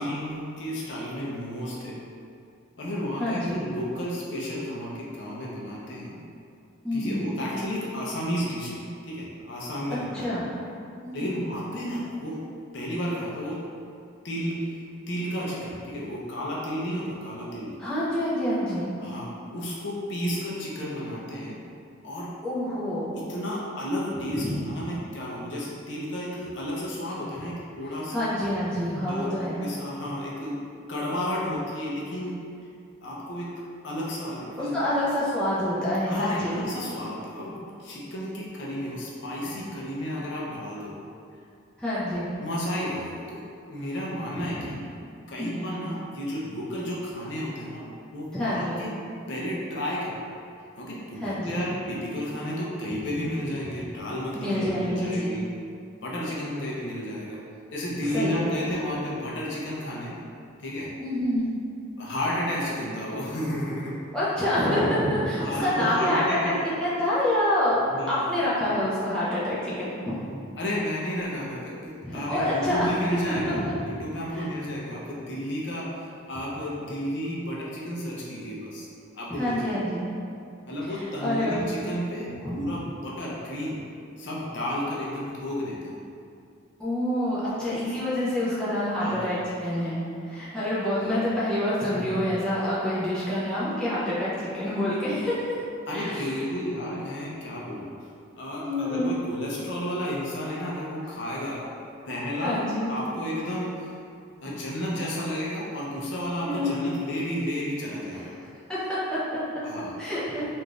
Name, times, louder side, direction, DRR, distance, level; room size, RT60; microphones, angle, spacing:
voice 1, 0.0-2.0 2.8-6.2 6.9-10.4 11.1-12.5 12.7-13.7 14.2-17.8 19.0-21.6 22.0-22.4 23.1-28.4 29.1-29.3 29.6-30.6 30.9-32.4 33.0-34.8 36.1-41.0 42.0-42.1 42.4-44.8 45.3-47.8 48.1-49.0 49.3-50.1 50.8-55.5 56.0-57.4 57.7-60.2 60.6-60.9 62.0-64.0 65.4-66.7 67.9-68.3 70.6-78.9 79.1-79.9 80.7-83.8 84.2-86.0 89.0-89.4 91.0-91.3 91.9-92.3 95.9-98.0 98.3-101.7 102.1-103.9 104.4-108.4 109.6-109.9, equal, 60° left, -5 dB, 0.5 m, -32 dB
voice 2, 3.2-3.6 6.8-7.3 10.1-10.4 11.0-11.3 17.8-18.9 22.4-23.2 24.4-24.6 28.1-29.6 34.6-36.6 39.4-39.5 41.8-42.2 44.3-44.7 45.4-45.7 48.3-48.8 51.2-51.5 54.3-55.3 58.1-58.7 61.0-61.5 64.1-66.5 66.8-67.8 68.1-70.2 72.0-72.9 73.3-73.8 74.3-74.4 79.3-80.0 80.9-81.6 82.4-82.6 86.8-95.6 95.9-96.3 98.6-99.1 102.4-102.9 106.4-106.8 108.1-108.2 108.7-109.4 110.0-110.4, left 1 dB, 5° left, -11 dB, 0.5 m, -27 dB
3.4 x 2.5 x 2.3 m, 2.5 s
head